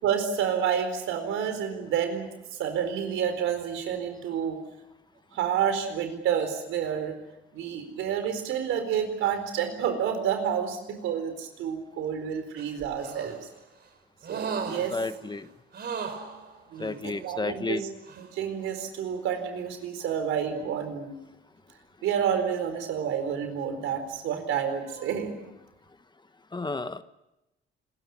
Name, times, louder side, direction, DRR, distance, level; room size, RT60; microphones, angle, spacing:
voice 1, 0.0-2.3 2.6-4.6 5.3-7.2 7.5-13.4 14.3-15.0 16.7-17.9 18.2-21.1 22.0-25.3, right 8 dB, 90° right, 7 dB, 4.4 m, -29 dB
sound 1, 12.6-13.5 14.2-15.3 15.7-17.0 18.1-18.3, right 5 dB, 55° right, 3.7 m, -36 dB
voice 2, 14.9-15.5 16.8-17.8 26.5-27.0, left 3 dB, 20° left, 11 dB, 1.2 m, -31 dB
27.0 x 14.5 x 9.8 m, 0.95 s
cardioid pair, 90°, 20 cm